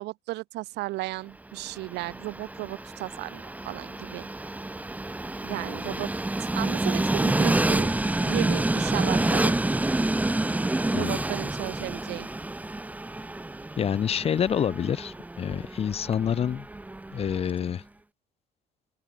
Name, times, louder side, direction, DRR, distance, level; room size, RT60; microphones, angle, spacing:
voice 1, 0.0-4.3 5.4-6.1 6.4-9.6 11.0-12.3, right 19 dB, 85° right, 3.3 m, -35 dB
Train, 1.6-17.6, right 2 dB, 10° right, 1.2 m, -28 dB
voice 2, 13.8-16.7 17.1-17.8, left 8 dB, 35° left, 0.6 m, -27 dB
open air
cardioid pair, 110°, 17 cm